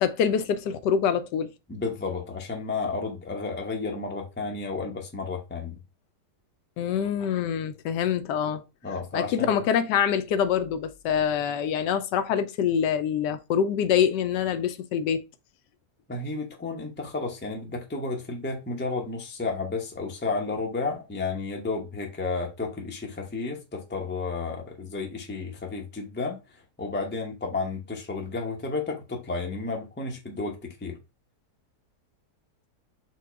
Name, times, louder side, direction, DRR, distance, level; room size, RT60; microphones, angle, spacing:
voice 1, 0.0-1.5 6.8-8.6 9.1-15.2, left 8 dB, 90° left, 1.2 m, -25 dB
voice 2, 1.7-5.8 8.8-9.5 16.1-26.4 26.8-31.0, left 3 dB, 10° left, 0.5 m, -32 dB
4.5 x 2.3 x 4.5 m
omnidirectional pair, 1.8 m